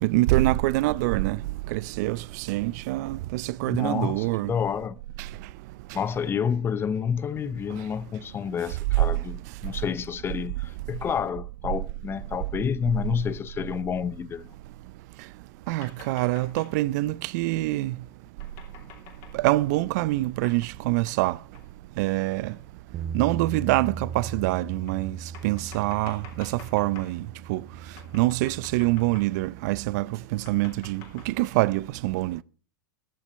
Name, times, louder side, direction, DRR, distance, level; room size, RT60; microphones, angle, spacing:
voice 1, 0.0-1.4 1.7-4.5 15.7-18.0 19.3-21.4 22.0-22.5 23.1-25.2 25.4-27.6 28.1-32.4, right 19 dB, 50° right, 0.5 m, -25 dB
voice 2, 3.7-5.0 5.9-14.5, left 7 dB, 20° left, 0.7 m, -29 dB
sound 1, 15.7-16.9 18.4-19.4 20.4-20.8 21.1-21.2 21.5-21.7 22.5-22.6 23.6-23.7 24.9-27.2 28.0-29.5 30.3-31.4, left 6 dB, 50° left, 3.7 m, -49 dB
Bass guitar, 22.9-29.2, right 6 dB, 30° right, 1.0 m, -38 dB
21.5 x 7.3 x 4.3 m
hypercardioid pair, 105°, 12 cm